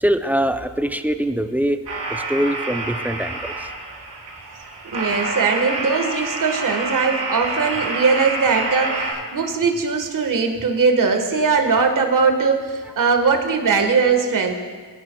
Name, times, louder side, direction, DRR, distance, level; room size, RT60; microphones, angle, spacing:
voice 1, 0.0-1.8 2.1-3.7, equal, 5° right, 8 dB, 0.5 m, -23 dB
sound 1, 1.9-9.1, right 2 dB, 80° right, 3.2 m, -27 dB
voice 2, 4.9-14.5, right 5 dB, 50° right, 4 dB, 1.5 m, -20 dB
20.0 x 10.0 x 2.3 m, 1.5 s
cardioid pair, 85°, 41 cm